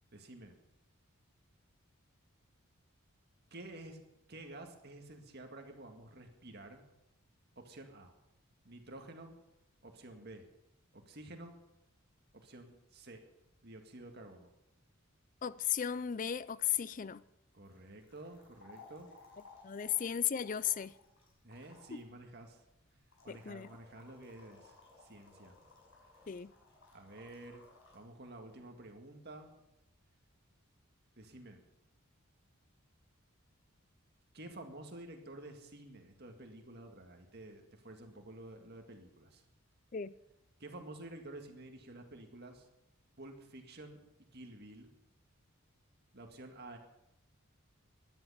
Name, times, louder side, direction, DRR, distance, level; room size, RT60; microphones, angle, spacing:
voice 1, 0.1-0.5 3.5-4.0 4.3-6.8 7.6-8.1 8.6-9.3 9.8-10.5 10.9-11.5 12.3-13.2 13.6-14.5 17.5-19.1 21.4-22.6 23.2-25.6 26.9-27.6 27.9-29.5 31.2-31.6 34.3-39.4 40.6-42.7 43.2-44.0 44.3-44.9 46.1-46.8, right 1 dB, 50° right, 1.9 m, -50 dB
voice 2, 15.4-17.2 19.6-20.9 21.9-22.0 23.3-23.7 26.3-26.5 39.9-40.1, left 9 dB, 40° left, 0.4 m, -35 dB
sound 1, 17.6-28.0, left 3 dB, 65° left, 5.2 m, -60 dB
15.0 x 11.0 x 5.7 m
head